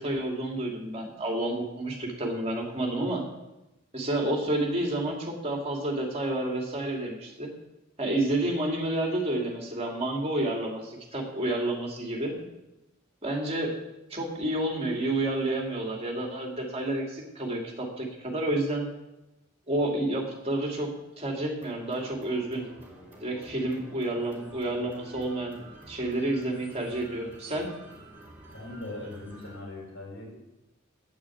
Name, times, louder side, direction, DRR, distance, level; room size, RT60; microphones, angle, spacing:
voice 1, 0.0-3.2 3.9-7.5 8.0-12.3 13.2-13.7 14.1-18.8 19.7-20.9 21.2-22.7 23.2-25.6 25.9-27.7, right 1 dB, 30° right, 0 dB, 2.6 m, -30 dB
sound 1, 21.6-29.6, right 1 dB, 10° right, 5.7 m, -49 dB
voice 2, 28.5-30.3, left 2 dB, 90° left, -3 dB, 5.1 m, -40 dB
8.9 x 8.6 x 8.6 m, 0.97 s
head